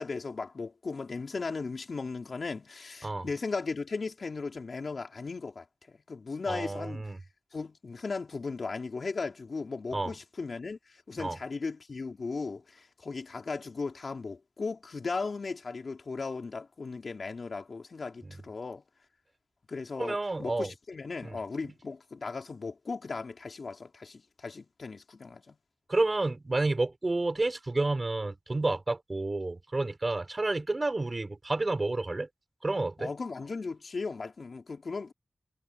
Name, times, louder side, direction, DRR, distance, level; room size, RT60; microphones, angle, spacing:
voice 1, 0.0-7.1 7.5-18.8 19.7-25.6 33.0-35.1, left 4 dB, 55° left, 3.5 m, -37 dB
voice 2, 6.5-7.2 9.9-10.1 11.2-11.4 18.2-18.3 20.0-20.7 21.2-21.4 25.9-32.3 32.6-33.1, right 2 dB, 30° right, 5.9 m, -30 dB
cardioid pair, 70°, 0 cm